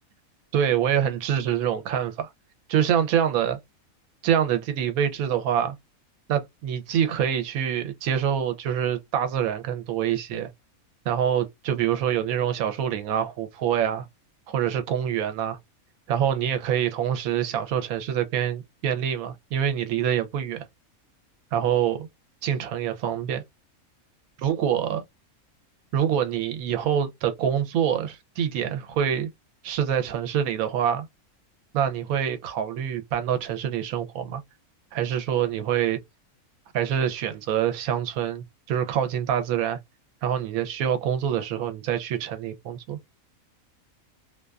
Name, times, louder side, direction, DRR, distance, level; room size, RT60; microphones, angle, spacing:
voice 1, 0.5-2.3 2.7-3.6 4.2-5.8 6.3-10.5 11.1-14.0 14.5-15.6 16.1-20.6 21.5-22.1 22.4-23.4 24.4-25.0 25.9-29.3 29.6-31.1 31.7-34.4 34.9-36.0 36.7-39.8 40.2-43.0, right 9 dB, 80° right, 1.0 m, -25 dB
2.5 x 2.2 x 2.3 m
omnidirectional pair, 1.5 m